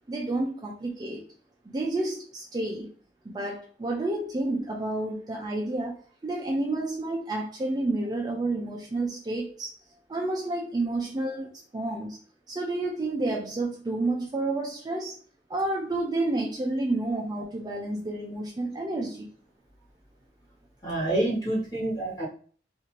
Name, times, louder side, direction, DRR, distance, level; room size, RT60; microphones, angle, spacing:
voice 1, 0.1-1.3 1.7-2.9 3.2-9.7 10.1-12.2 12.5-15.2 15.5-19.3, right 2 dB, 25° right, 0.3 m, -30 dB
voice 2, 20.8-22.2, right 1 dB, 20° left, 1.2 m, -27 dB
2.6 x 2.5 x 3.0 m
head